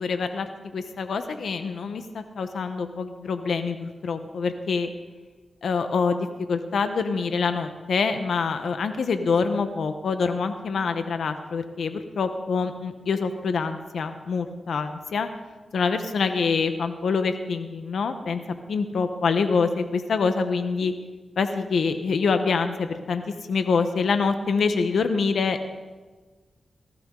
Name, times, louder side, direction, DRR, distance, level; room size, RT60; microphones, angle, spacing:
voice 1, 0.0-4.9 5.6-15.3 15.7-18.4 18.7-20.9 21.4-23.2 23.5-25.7, left 5 dB, 80° left, 8 dB, 0.9 m, -25 dB
19.0 x 14.5 x 3.8 m, 1.3 s
cardioid pair, 60°, 0 cm